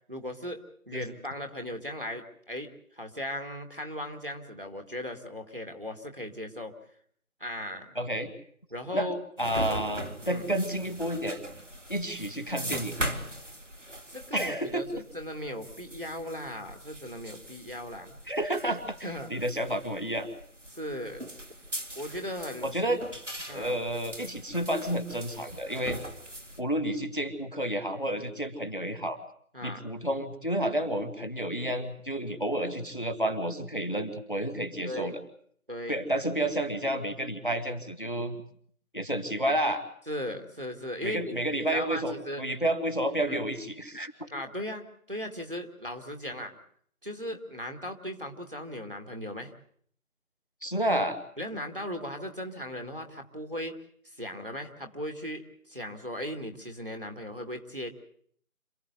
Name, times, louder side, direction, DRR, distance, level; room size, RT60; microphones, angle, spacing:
voice 1, 0.1-2.7 2.9-6.7 7.4-8.0 8.7-9.2 10.2-10.4 14.1-18.2 19.0-19.3 20.7-21.2 21.9-22.7 23.5-23.8 25.9-26.1 29.5-29.8 34.8-35.1 35.7-36.0 40.1-42.4 43.3-43.4 44.3-46.6 47.0-49.5 51.4-53.8 54.2-57.9, left 1 dB, 40° right, 5 dB, 2.0 m, -37 dB
voice 2, 7.9-8.3 8.9-9.1 9.4-11.4 11.9-12.9 14.3-14.8 18.3-20.3 22.6-23.0 23.5-26.0 26.6-29.2 29.6-35.2 35.9-38.4 38.9-39.8 41.0-44.1 50.6-51.2, right 1 dB, 35° left, 8 dB, 1.7 m, -30 dB
sound 1, 9.4-26.6, right 1 dB, 55° right, 2.2 m, -40 dB
27.0 x 16.0 x 8.3 m, 0.62 s
figure-of-eight pair, 180°, 42 cm